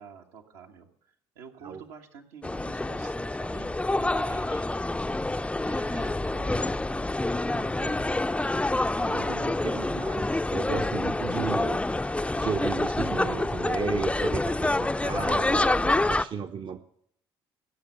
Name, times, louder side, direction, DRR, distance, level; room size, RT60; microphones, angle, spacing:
voice 1, 0.0-4.7 4.9-7.2 9.1-9.9, right 6 dB, 75° right, 2 dB, 1.5 m, -49 dB
sound 1, 2.4-16.3, left 2 dB, 10° left, 0.5 m, -27 dB
voice 2, 7.5-8.0 9.0-16.8, right 6 dB, 45° right, 8 dB, 0.8 m, -35 dB
16.0 x 6.8 x 8.8 m, 0.69 s
hypercardioid pair, 50°, 12 cm